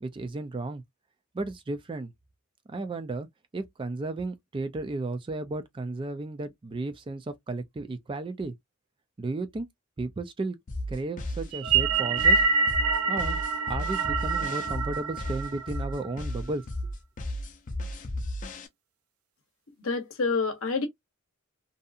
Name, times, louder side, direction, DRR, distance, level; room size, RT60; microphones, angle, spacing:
voice 1, 0.0-0.8 1.3-2.1 2.7-3.3 3.5-8.5 9.2-9.7 10.0-10.6 10.9-12.4 13.1-13.4 13.7-16.9, right 2 dB, 25° right, 0.3 m, -34 dB
sound 1, 10.7-18.7, left 1 dB, 35° left, 0.5 m, -34 dB
sound 2, 11.5-16.1, right 4 dB, 85° right, 0.5 m, -26 dB
voice 2, 19.8-20.9, left 4 dB, 70° left, 0.8 m, -27 dB
2.7 x 2.4 x 2.4 m
head